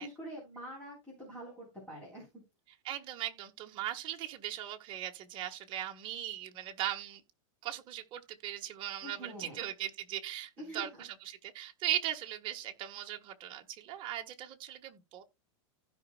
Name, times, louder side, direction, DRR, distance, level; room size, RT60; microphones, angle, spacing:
voice 1, 0.0-2.3 9.0-9.7 10.6-11.0, equal, 5° left, 4.0 m, -45 dB
voice 2, 2.8-7.2 7.6-15.2, right 12 dB, 30° right, 1.5 m, -39 dB
15.5 x 5.4 x 2.3 m
supercardioid pair, 165°, 17 cm